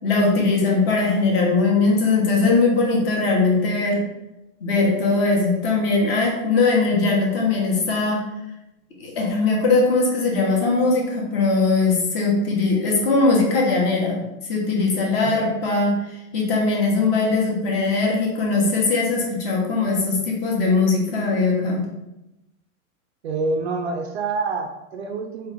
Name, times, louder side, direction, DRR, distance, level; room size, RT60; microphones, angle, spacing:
voice 1, 0.0-4.0 4.6-8.2 9.0-15.9 16.3-21.8, left 3 dB, 40° left, -2 dB, 1.3 m, -20 dB
voice 2, 23.2-25.5, right 3 dB, 50° right, 4 dB, 0.5 m, -27 dB
4.2 x 3.5 x 3.5 m, 0.93 s
supercardioid pair, 165°, 44 cm